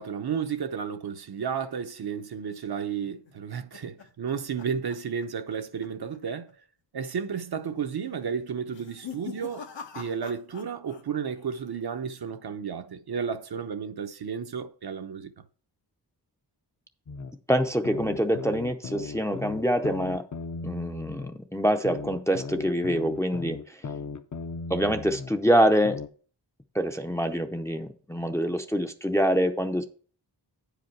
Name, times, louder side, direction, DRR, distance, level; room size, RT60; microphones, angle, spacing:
voice 1, 0.0-6.5 6.9-9.7 9.9-15.3, right 7 dB, 60° right, 0.8 m, -32 dB
sound 1, 3.0-5.5 5.8-6.2 6.5-6.6 7.3-7.7 8.6-11.0 11.3-11.9, left 7 dB, 85° left, 1.3 m, -44 dB
sound 2, 17.1-17.3 17.8-21.3 21.8-25.3 25.8-26.1, left 4 dB, 45° left, 0.7 m, -37 dB
voice 2, 17.5-20.3 20.6-23.8 24.7-26.0 26.7-29.8, equal, 5° left, 0.5 m, -25 dB
9.3 x 5.1 x 4.5 m
wide cardioid pair, 135°, 43 cm